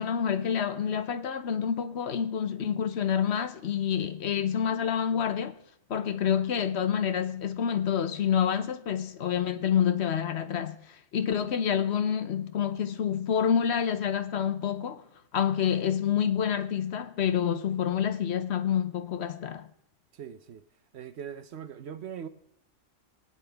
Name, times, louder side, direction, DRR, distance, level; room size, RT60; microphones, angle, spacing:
voice 1, 0.0-5.6 5.9-15.0 15.3-19.7, left 8 dB, 60° left, 1.0 m, -28 dB
voice 2, 20.1-20.6 20.9-22.3, right 8 dB, 65° right, 0.9 m, -41 dB
21.5 x 9.7 x 3.4 m
omnidirectional pair, 1.3 m